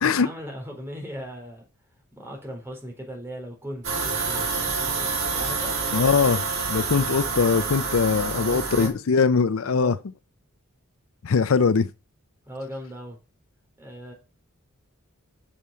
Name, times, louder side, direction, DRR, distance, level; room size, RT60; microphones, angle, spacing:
voice 1, 0.0-1.7 2.1-6.1 8.3-9.0 9.6-10.0 12.4-13.2 13.8-14.1, equal, 10° right, 3.7 m, -38 dB
sound 1, 3.8-8.9, right 4 dB, 90° right, 3.3 m, -27 dB
voice 2, 5.9-6.4 6.7-10.0 11.2-11.9, left 5 dB, 70° left, 0.5 m, -21 dB
8.6 x 6.3 x 5.6 m
head